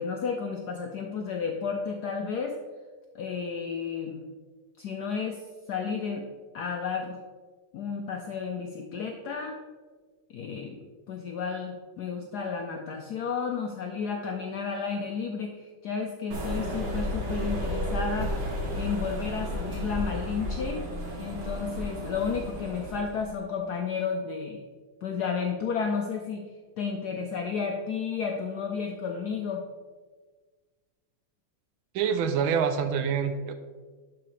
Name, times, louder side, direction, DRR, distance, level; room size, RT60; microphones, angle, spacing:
voice 1, 0.0-2.6 3.1-4.2 4.8-5.4 5.7-6.3 6.5-7.2 7.7-9.6 10.3-18.3 18.7-20.9 21.2-24.6 25.0-26.5 26.8-29.6, left 5 dB, 75° left, 2 dB, 0.9 m, -32 dB
sound 1, 16.3-23.3, left 1 dB, 50° right, 1.8 m, -32 dB
voice 2, 31.9-33.5, right 7 dB, 80° right, 8 dB, 1.4 m, -26 dB
11.5 x 4.8 x 3.1 m, 1.4 s
omnidirectional pair, 2.4 m